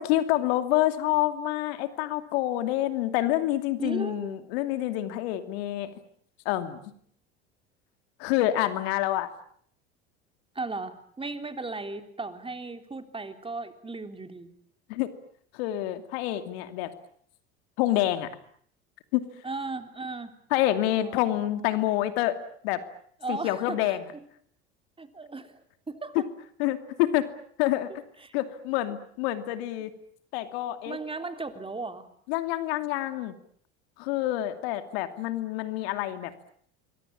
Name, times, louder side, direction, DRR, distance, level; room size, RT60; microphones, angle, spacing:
voice 1, 0.0-5.9 6.4-6.8 8.2-9.3 14.9-15.1 15.5-16.9 17.8-18.3 19.1-19.2 20.5-22.4 22.6-22.8 23.3-24.0 26.1-26.2 26.6-27.3 27.6-27.9 28.3-29.9 30.3-31.0 32.3-33.3 34.0-36.3, left 14 dB, 70° left, 9 dB, 2.7 m, -27 dB
voice 2, 3.8-4.4 10.6-14.5 19.4-20.3 21.0-21.2 23.2-24.2 25.0-25.5 25.9-26.3 28.2-28.4 30.9-32.1, right 3 dB, 15° right, 8 dB, 3.5 m, -36 dB
26.5 x 22.5 x 8.7 m, 0.63 s
hypercardioid pair, 80°, 32 cm